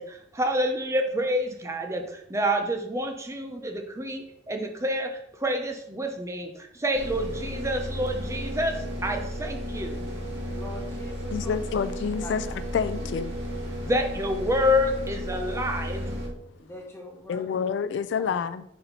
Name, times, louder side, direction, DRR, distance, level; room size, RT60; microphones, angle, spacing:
voice 1, 0.0-10.0 13.8-16.2, equal, 15° right, 0.6 m, -28 dB
sound 1, 6.9-16.3, equal, 85° right, 1.8 m, -34 dB
voice 2, 10.5-11.5 12.2-12.3 13.0-13.1 16.6-17.6 18.2-18.4, left 1 dB, 15° left, 1.2 m, -42 dB
voice 3, 11.3-12.5 12.7-13.3 17.3-18.6, left 6 dB, 75° left, 0.3 m, -28 dB
4.3 x 4.2 x 5.2 m
head